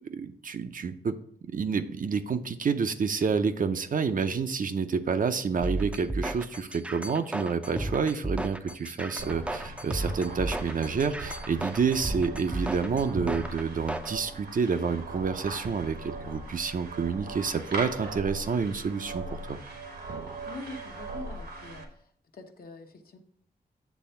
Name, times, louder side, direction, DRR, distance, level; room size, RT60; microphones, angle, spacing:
voice 1, 0.0-1.2 1.5-19.6, right 5 dB, 55° right, 9 dB, 0.6 m, -29 dB
sound 1, 5.6-14.1, right 1 dB, 5° right, 0.5 m, -34 dB
sound 2, 9.2-21.8, right 2 dB, 80° right, 1.3 m, -39 dB
voice 2, 20.4-21.8 22.3-23.2, left 2 dB, 65° left, 4 dB, 0.9 m, -44 dB
8.2 x 3.4 x 5.6 m, 0.65 s
cardioid pair, 70°, 17 cm